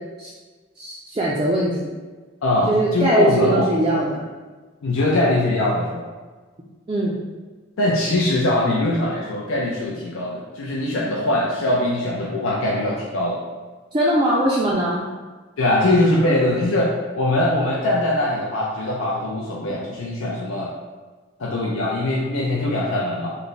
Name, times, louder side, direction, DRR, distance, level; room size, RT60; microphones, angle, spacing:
voice 1, 0.8-1.9 2.7-4.2 6.9-7.2 13.9-15.1, right 1 dB, 25° right, -5 dB, 0.3 m, -21 dB
voice 2, 2.4-3.7 4.8-6.1 7.8-13.4 15.6-20.7 21.4-23.4, left 1 dB, 80° left, -3 dB, 0.5 m, -21 dB
3.3 x 2.1 x 3.9 m, 1.3 s
head